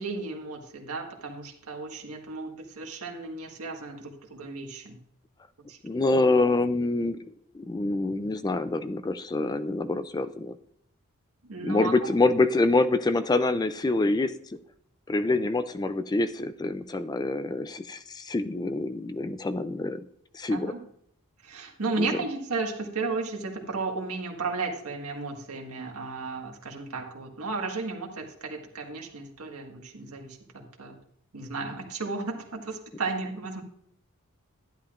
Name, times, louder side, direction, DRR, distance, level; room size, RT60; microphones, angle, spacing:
voice 1, 0.0-5.0 5.7-5.8 11.5-12.1 20.5-20.8 21.4-31.0 31.3-33.6, right 3 dB, 80° right, 2 dB, 1.6 m, -34 dB
voice 2, 5.8-7.2 7.5-10.6 11.6-14.3 15.1-20.0 20.3-20.7 22.0-22.1, left 2 dB, 20° left, 12 dB, 0.3 m, -26 dB
11.5 x 10.5 x 2.5 m, 0.68 s
head